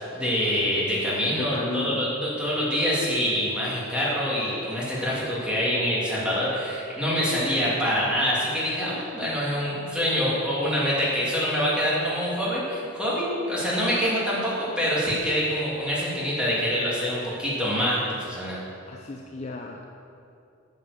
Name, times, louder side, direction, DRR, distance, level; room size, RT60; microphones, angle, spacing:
voice 1, 0.1-18.6, equal, 5° right, -7 dB, 2.6 m, -25 dB
voice 2, 1.3-2.1 18.9-19.8, left 2 dB, 30° left, 2 dB, 0.5 m, -34 dB
9.1 x 7.7 x 6.8 m, 2.6 s
head